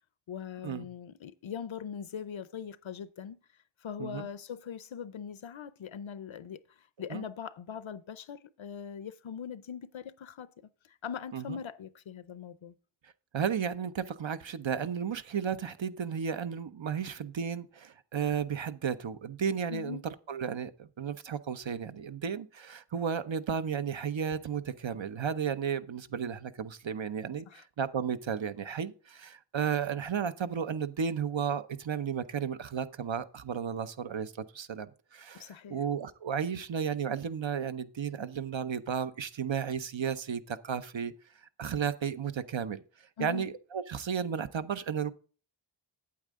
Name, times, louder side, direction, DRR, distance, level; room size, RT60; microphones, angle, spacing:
voice 1, 0.3-3.4 3.8-10.5 10.8-12.7 19.7-20.0 27.5-27.6 35.3-35.8 43.2-43.5, left 7 dB, 75° left, 0.6 m, -41 dB
voice 2, 13.3-41.1 41.6-42.8 43.2-45.1, right 7 dB, 70° right, 0.7 m, -33 dB
8.6 x 8.4 x 3.6 m
wide cardioid pair, 50°, 48 cm